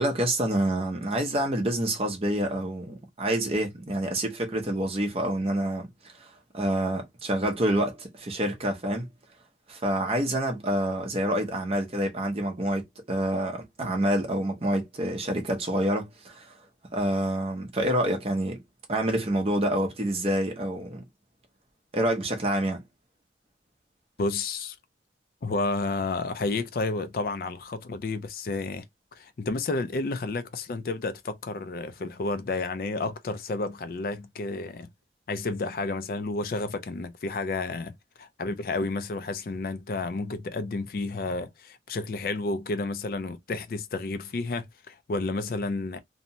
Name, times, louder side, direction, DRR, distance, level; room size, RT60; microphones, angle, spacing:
voice 1, 0.0-5.9 6.2-9.1 9.7-16.5 16.9-18.6 18.9-21.0 21.9-22.8, right 1 dB, 35° right, 0.6 m, -27 dB
voice 2, 24.2-24.8 25.4-28.9 29.2-34.9 35.3-46.0, left 3 dB, 50° left, 0.4 m, -31 dB
2.7 x 2.1 x 2.6 m
head